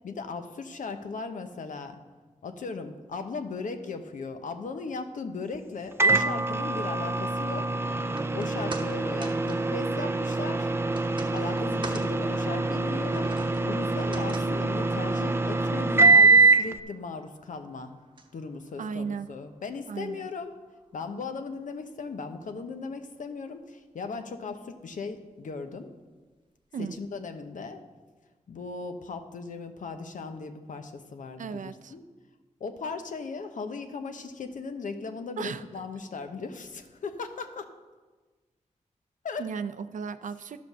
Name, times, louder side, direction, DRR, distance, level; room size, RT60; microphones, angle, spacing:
voice 1, 0.0-2.0 2.4-7.8 8.3-10.7 11.3-13.3 13.6-17.9 18.3-20.6 20.9-25.9 26.8-27.8 28.5-32.0 32.6-37.7 39.2-39.5, left 4 dB, 80° left, 7 dB, 0.9 m, -37 dB
Microwave oven, 6.0-16.8, right 3 dB, 20° right, 0.4 m, -24 dB
sound 1, 8.0-20.4 20.7-20.8, right 3 dB, 35° right, 0.9 m, -47 dB
voice 2, 18.8-19.3 19.9-20.3 26.7-26.9 31.4-31.9 35.4-35.6 39.4-40.6, right 6 dB, 75° right, 12 dB, 0.5 m, -35 dB
11.5 x 5.1 x 6.6 m, 1.3 s
wide cardioid pair, 90°, 13 cm